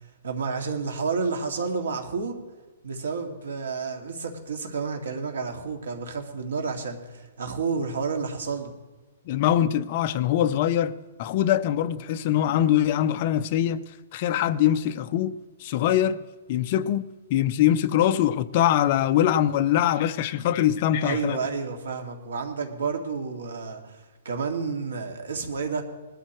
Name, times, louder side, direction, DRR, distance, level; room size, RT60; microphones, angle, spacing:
voice 1, 0.2-2.4 2.8-8.7 21.0-25.8, right 5 dB, 90° right, 2.2 m, -30 dB
voice 2, 9.3-10.9 11.2-13.8 14.1-16.2 16.5-21.4, left 11 dB, 30° left, 0.5 m, -23 dB
20.0 x 12.5 x 3.1 m
hypercardioid pair, 170°, 0 cm